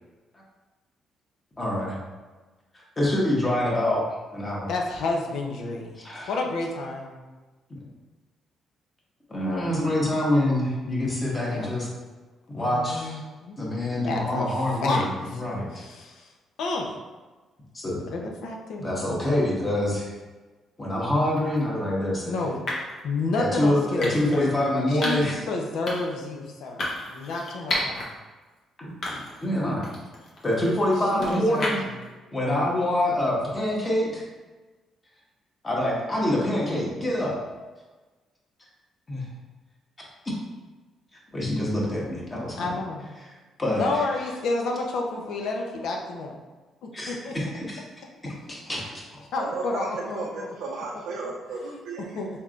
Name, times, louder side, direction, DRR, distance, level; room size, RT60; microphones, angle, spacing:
voice 1, 1.6-2.0 2.7-4.0 4.3-4.7 6.0-6.3 7.7-7.8 9.3-11.9 12.5-13.2 13.6-15.8 17.7-18.0 18.8-20.1 20.8-22.4 23.4-25.4 28.8-29.9 30.4-31.8 32.3-34.2 35.6-37.4 39.1-39.2 40.2-40.3 41.3-42.7 43.2-43.3 43.6-43.9 46.9-47.8 48.2-49.2, left 1 dB, 25° left, -4 dB, 1.3 m, -26 dB
voice 2, 4.7-6.0 6.3-7.2 11.5-11.7 12.6-13.6 14.0-15.1 15.7-16.3 16.6-17.0 18.0-19.1 22.2-22.6 23.0-24.4 24.9-28.1 31.1-31.9 42.6-43.1 43.8-46.4 46.8-47.3 49.3-50.5 50.9-51.0 52.2-52.3, left 3 dB, 80° left, 1 dB, 0.7 m, -30 dB
sound 1, 21.4-21.6 22.7-23.0 24.0-24.4 25.0-25.3 25.9-26.2 26.8-28.1 28.5-28.6 29.0-29.5 29.8-32.0, left 1 dB, 60° left, 1.1 m, -32 dB
voice 3, 49.4-52.3, right 4 dB, 85° right, -2 dB, 0.5 m, -34 dB
4.3 x 3.4 x 2.5 m, 1.3 s
cardioid pair, 90°, 0 cm